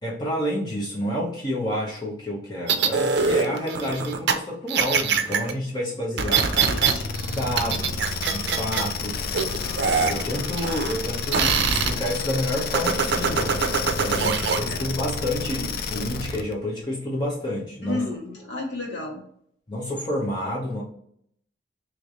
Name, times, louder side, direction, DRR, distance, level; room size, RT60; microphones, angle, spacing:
voice 1, 0.0-6.4 7.2-9.3 10.1-13.6 14.0-18.0 19.7-20.8, left 1 dB, 25° left, -4 dB, 0.7 m, -29 dB
sound 1, 2.7-4.3 4.7-5.5 6.2-6.9 7.2-8.9 9.3-11.1 11.3-11.9 12.7-14.6, right 6 dB, 65° right, 0.5 m, -23 dB
voice 2, 6.3-7.1 7.5-7.7 14.1-14.4 14.7-14.8 17.8-19.2, left 3 dB, 75° left, -2 dB, 1.4 m, -33 dB
sound 2, 6.4-16.5, left 4 dB, 55° left, 0.4 m, -30 dB
3.2 x 3.1 x 3.7 m, 0.67 s
head